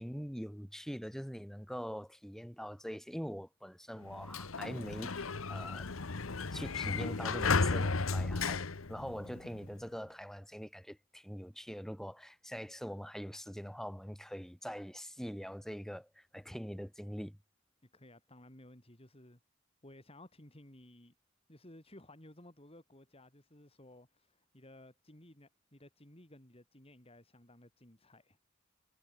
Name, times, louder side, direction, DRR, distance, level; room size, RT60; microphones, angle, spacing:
voice 1, 0.0-5.9 6.5-17.4, equal, ahead, 3.3 m, -43 dB
Sliding door, 4.0-9.7, left 4 dB, 90° left, 1.1 m, -34 dB
voice 2, 17.8-19.4 19.8-21.1 21.5-28.5, left 1 dB, 30° left, 3.8 m, -57 dB
head